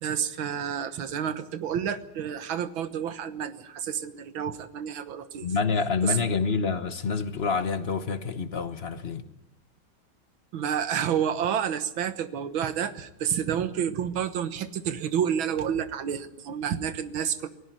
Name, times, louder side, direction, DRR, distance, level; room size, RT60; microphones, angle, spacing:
voice 1, 0.0-5.5 6.0-6.2 10.5-17.5, right 8 dB, 75° right, 2.0 m, -29 dB
voice 2, 5.4-9.2, left 5 dB, 40° left, 1.0 m, -27 dB
18.5 x 17.5 x 9.2 m
omnidirectional pair, 2.2 m